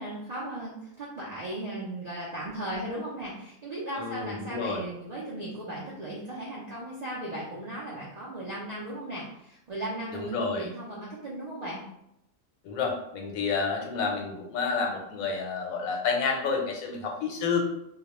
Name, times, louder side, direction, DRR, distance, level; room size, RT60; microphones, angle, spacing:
voice 1, 0.0-11.9, right 1 dB, 65° right, -7 dB, 0.4 m, -37 dB
voice 2, 3.9-4.8 10.1-10.7 12.6-17.6, left 5 dB, 90° left, 1 dB, 1.0 m, -30 dB
2.3 x 2.1 x 2.9 m, 0.80 s
omnidirectional pair, 1.4 m